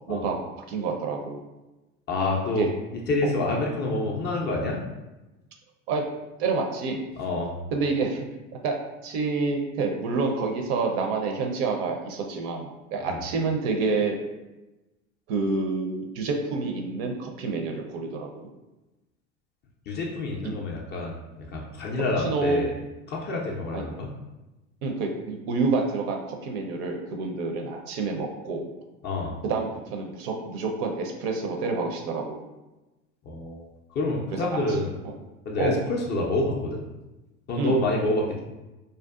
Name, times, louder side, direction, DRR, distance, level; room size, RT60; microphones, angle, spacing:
voice 1, 0.7-1.4 2.6-2.7 3.2-3.3 5.9-6.0 6.4-7.0 7.7-8.3 8.6-8.8 9.0-14.2 15.3-18.5 22.2-22.6 23.7-23.9 24.8-28.7 29.4-32.4 34.3-34.8 35.0-35.1 35.6-35.8 37.6-37.8, right 4 dB, 55° right, 3 dB, 0.5 m, -28 dB
voice 2, 2.1-2.7 3.1-4.8 7.2-7.6 13.0-13.2 19.9-22.7 23.1-24.1 29.0-29.4 33.3-33.6 33.9-34.9 35.5-36.8 37.5-38.4, left 2 dB, 30° left, -1 dB, 0.4 m, -27 dB
2.5 x 2.1 x 2.3 m, 1.1 s
hypercardioid pair, 80°, 39 cm